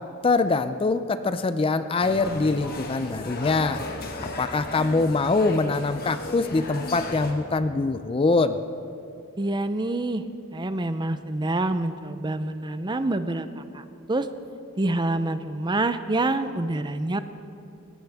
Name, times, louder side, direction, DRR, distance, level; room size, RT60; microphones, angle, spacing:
voice 1, 0.2-3.8 4.2-8.6, left 3 dB, 25° left, 11 dB, 0.4 m, -23 dB
sound 1, 2.0-7.3, left 2 dB, 45° left, 1.7 m, -35 dB
voice 2, 9.4-10.2 10.5-14.3 14.8-17.2, right 2 dB, 20° right, 11 dB, 0.6 m, -27 dB
21.0 x 18.5 x 3.5 m, 2.5 s
head